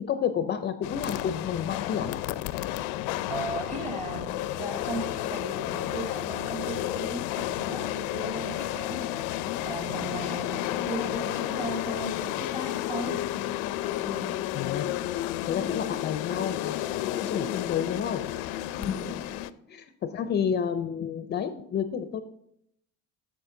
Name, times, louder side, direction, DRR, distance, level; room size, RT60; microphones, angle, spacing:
voice 1, 0.1-2.1 14.5-14.9 15.5-18.2 18.5-19.0 19.7-22.2, left 8 dB, 35° left, 9 dB, 0.4 m, -30 dB
sound 1, 0.8-19.5, left 14 dB, 90° left, 0.5 m, -32 dB
voice 2, 3.3-9.3 9.6-13.2 14.0-14.3 18.8-19.2 21.5-21.6, right 2 dB, 25° right, 3 dB, 1.7 m, -37 dB
7.4 x 7.0 x 3.7 m, 0.72 s
cardioid pair, 130°, 30 cm